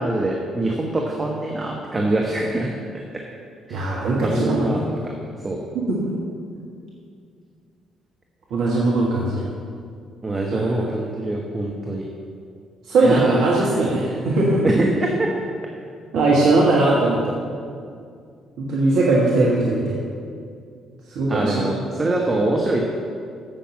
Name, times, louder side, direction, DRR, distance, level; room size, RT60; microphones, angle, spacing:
voice 1, 0.0-2.7 3.7-5.1 5.4-5.6 10.2-12.1 13.0-13.4 14.6-15.3 21.3-22.8, right 2 dB, 25° right, -1 dB, 1.4 m, -24 dB
voice 2, 3.7-4.8 5.7-6.1 8.5-9.5 10.5-10.9 12.9-14.6 16.1-17.3 18.6-20.0 21.1-21.6, right 2 dB, 60° right, -5 dB, 1.5 m, -20 dB
8.8 x 7.6 x 7.5 m, 2.3 s
figure-of-eight pair, 45°, 0 cm